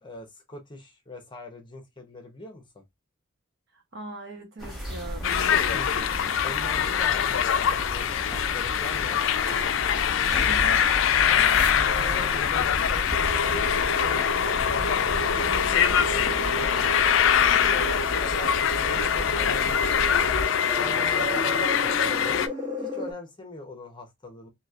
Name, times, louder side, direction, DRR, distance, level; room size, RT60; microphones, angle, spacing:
voice 1, 0.0-2.8 5.7-9.2 11.3-13.1 13.4-16.7 17.4-20.3 20.8-24.5, left 2 dB, 25° left, 0.8 m, -42 dB
voice 2, 3.7-5.8 10.4-10.8, right 2 dB, 60° right, 0.9 m, -40 dB
sound 1, 4.6-20.5, equal, ahead, 1.2 m, -35 dB
sound 2, 5.2-22.5, left 9 dB, 70° left, 0.3 m, -24 dB
sound 3, 13.1-23.1, left 1 dB, 30° right, 1.4 m, -32 dB
3.0 x 2.7 x 2.4 m
head